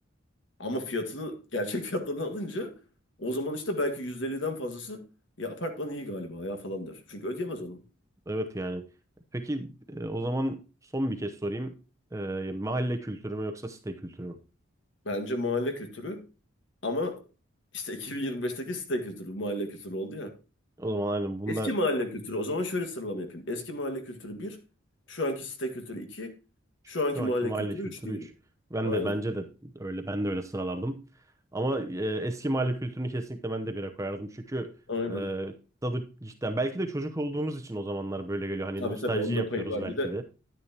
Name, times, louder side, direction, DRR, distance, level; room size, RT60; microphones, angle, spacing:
voice 1, 0.6-2.8 3.2-5.1 5.4-7.8 15.0-16.2 16.8-17.2 17.7-20.3 21.5-24.6 25.1-26.3 26.9-28.3 28.8-29.1 34.9-35.2 38.8-40.1, left 1 dB, 60° left, 1.7 m, -32 dB
voice 2, 8.3-8.8 9.3-10.6 10.9-11.8 12.1-14.4 20.8-21.7 26.8-28.3 28.7-31.0 31.5-34.7 35.1-35.6 35.8-40.2, right 1 dB, 15° right, 0.7 m, -32 dB
10.5 x 9.7 x 2.8 m
head